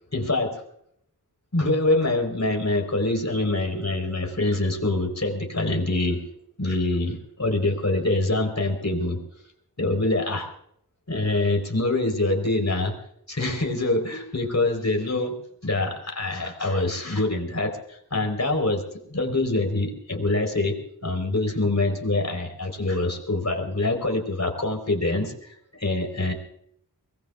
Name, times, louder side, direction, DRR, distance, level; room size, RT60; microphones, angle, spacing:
voice 1, 0.1-0.6 1.5-6.2 6.6-9.2 9.8-10.5 11.1-12.9 13.3-15.3 15.6-18.8 19.1-20.8 21.0-26.3, left 2 dB, 45° left, 3 dB, 4.2 m, -25 dB
24.0 x 20.0 x 2.5 m, 0.68 s
wide cardioid pair, 50°, 37 cm